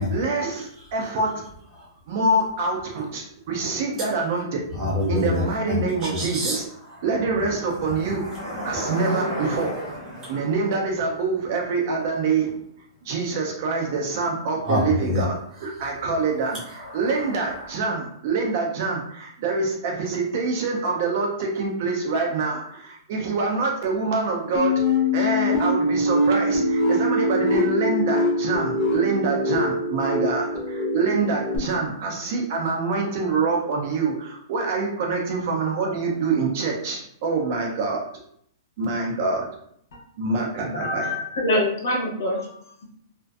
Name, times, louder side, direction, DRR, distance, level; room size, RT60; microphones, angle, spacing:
voice 1, 0.0-1.5 2.1-4.6 5.1-6.7 7.0-8.3 8.6-9.8 10.3-12.6 13.0-38.1 38.8-39.5 40.2-41.2, right 3 dB, 35° right, 0 dB, 0.4 m, -25 dB
voice 2, 4.7-10.5 14.6-15.2 16.5-17.7, left 1 dB, 15° right, -6 dB, 0.8 m, -29 dB
sound 1, 24.5-31.6, left 1 dB, 20° left, 0.5 m, -23 dB
voice 3, 40.7-42.5, left 1 dB, 60° left, -1 dB, 0.8 m, -25 dB
2.5 x 2.4 x 2.2 m, 0.67 s
hypercardioid pair, 175°, 2 cm